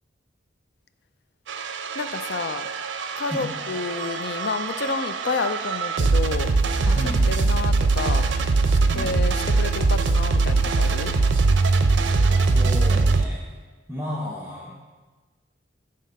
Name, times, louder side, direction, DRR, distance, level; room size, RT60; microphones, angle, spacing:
sound 1, 1.5-13.2, right 3 dB, 85° right, 0.5 m, -22 dB
voice 1, 1.9-2.7 3.2-8.3 8.7-11.1, left 4 dB, 65° left, 11 dB, 0.4 m, -30 dB
voice 2, 6.9-7.3 8.9-9.1 12.4-13.5 13.9-14.7, left 1 dB, 10° right, -5 dB, 0.8 m, -33 dB
9.2 x 3.7 x 5.4 m, 1.3 s
head